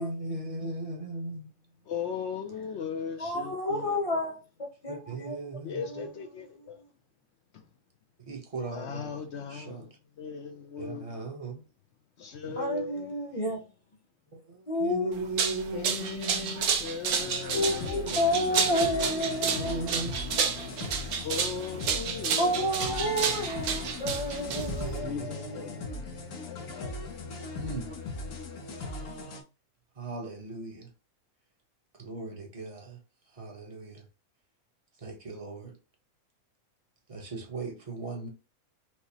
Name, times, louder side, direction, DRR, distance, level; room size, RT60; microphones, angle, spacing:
voice 1, 0.0-1.5 4.9-5.9 8.3-9.9 10.8-11.6 12.5-12.6 14.3-16.7 17.5-20.5 24.5-26.2 27.6-28.0 30.0-30.9 32.0-33.0 33.3-34.0 35.0-35.8 37.1-38.3, right 3 dB, 30° right, 0.7 m, -38 dB
voice 2, 1.9-4.0 5.6-6.8 7.5-7.6 8.7-11.2 12.2-13.6 15.7-18.4 21.2-23.5 24.8-25.8 26.4-26.9, left 6 dB, 65° left, 0.7 m, -38 dB
voice 3, 3.2-5.4 5.7-6.0 12.6-13.6 14.7-15.2 17.5-19.9 20.4-21.0 22.4-26.0, left 1 dB, 30° left, 0.7 m, -31 dB
sound 1, 15.1-25.0, right 6 dB, 80° right, 1.1 m, -31 dB
sound 2, 17.1-29.4, left 3 dB, 90° left, 1.3 m, -38 dB
4.5 x 2.0 x 2.8 m
omnidirectional pair, 1.5 m